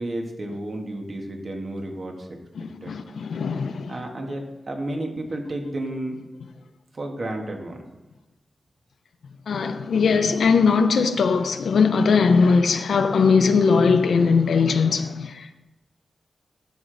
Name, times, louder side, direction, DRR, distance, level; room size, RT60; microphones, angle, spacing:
voice 1, 0.0-2.3 2.8-2.9 3.9-6.2 6.9-7.8, right 1 dB, 50° right, 1.5 m, -31 dB
voice 2, 2.6-3.9 9.5-15.6, left 5 dB, 85° left, 0.5 m, -20 dB
12.5 x 4.9 x 3.9 m
cardioid pair, 75°, 0 cm